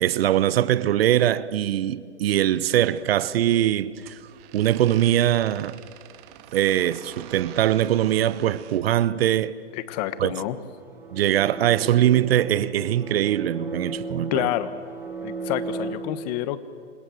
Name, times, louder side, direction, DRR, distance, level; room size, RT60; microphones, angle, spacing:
voice 1, 0.0-4.2 4.5-5.8 6.5-9.6 10.2-10.3 11.1-14.5, right 12 dB, 55° right, 1.0 m, -22 dB
sound 1, 2.7-8.9, right 12 dB, 35° right, 1.7 m, -47 dB
voice 2, 9.9-10.6 14.3-14.9 15.2-16.6, left 13 dB, 35° left, 1.4 m, -28 dB
sound 2, 9.9-15.9, right 3 dB, 5° right, 4.4 m, -36 dB
28.5 x 25.5 x 7.8 m
hypercardioid pair, 145°, 36 cm